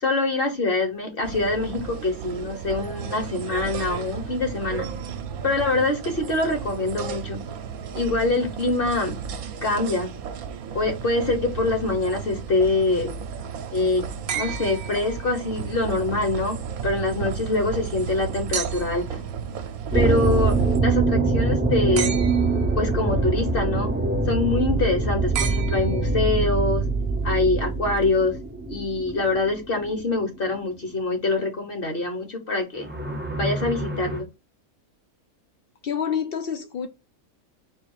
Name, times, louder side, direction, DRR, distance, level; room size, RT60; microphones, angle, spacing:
voice 1, 0.0-4.9 5.4-7.4 7.9-9.2 9.6-10.1 10.7-13.1 13.7-14.0 14.3-19.2 19.9-22.2 22.8-23.9 24.3-26.9 27.2-28.3 28.7-32.9 33.3-34.3, left 3 dB, 45° left, 1.1 m, -24 dB
sound 1, 1.2-20.8, right 6 dB, 75° right, 1.1 m, -34 dB
sound 2, 14.3-15.7 18.5-19.1 22.0-22.8 25.3-26.4 28.0-28.1, right 7 dB, 55° right, 0.7 m, -32 dB
sound 3, 19.9-29.9 30.2-30.3 32.8-34.2, right 3 dB, 15° right, 0.4 m, -24 dB
voice 2, 35.8-36.9, left 7 dB, 70° left, 0.5 m, -27 dB
4.6 x 2.4 x 4.6 m
omnidirectional pair, 1.5 m